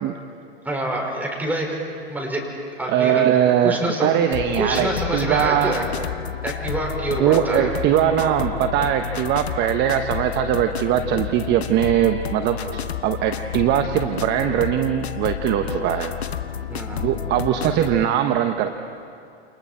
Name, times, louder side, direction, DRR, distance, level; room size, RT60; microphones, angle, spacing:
voice 1, 0.6-1.7 2.1-2.4 2.8-3.3 3.6-4.1 4.6-5.8 6.4-7.7 16.7-17.1, right 1 dB, 5° right, -1 dB, 5.5 m, -26 dB
voice 2, 2.9-5.8 7.2-16.1 17.0-18.7, right 10 dB, 35° right, 7 dB, 1.2 m, -21 dB
sound 1, 4.3-18.0, left 9 dB, 80° left, 1.1 m, -30 dB
29.5 x 29.0 x 4.5 m, 2.5 s
hypercardioid pair, 110°, 32 cm